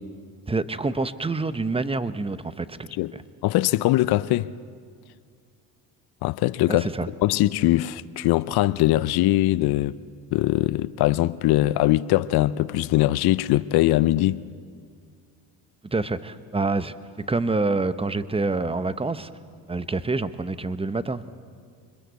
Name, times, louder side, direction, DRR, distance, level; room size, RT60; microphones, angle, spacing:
voice 1, 0.5-2.9 6.7-7.1 15.8-16.9 17.3-19.3 19.7-21.4, right 3 dB, 15° right, 0.9 m, -27 dB
voice 2, 3.4-4.5 6.2-6.9 7.2-10.0 10.3-14.4, left 16 dB, 60° left, 0.6 m, -21 dB
25.0 x 21.5 x 8.2 m
supercardioid pair, 80°, 43 cm